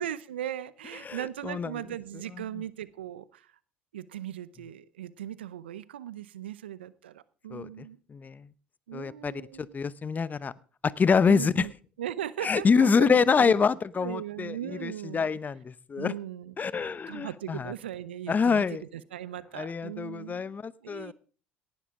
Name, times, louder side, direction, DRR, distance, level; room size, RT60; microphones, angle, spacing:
voice 1, 0.0-3.5 3.9-8.0 8.9-9.8 11.3-11.7 12.0-13.5 14.0-15.3 16.0-16.5 17.1-21.1, right 11 dB, 90° right, 18 dB, 0.7 m, -38 dB
voice 2, 1.0-1.7 7.5-7.7 8.1-8.4 8.9-9.3 9.6-10.5 10.8-11.7 12.4-14.5 14.8-16.1 16.6-17.7 18.3-18.8 19.5-21.1, left 5 dB, 30° left, 19 dB, 0.8 m, -26 dB
18.5 x 11.5 x 3.7 m, 0.39 s
hypercardioid pair, 70°, 6 cm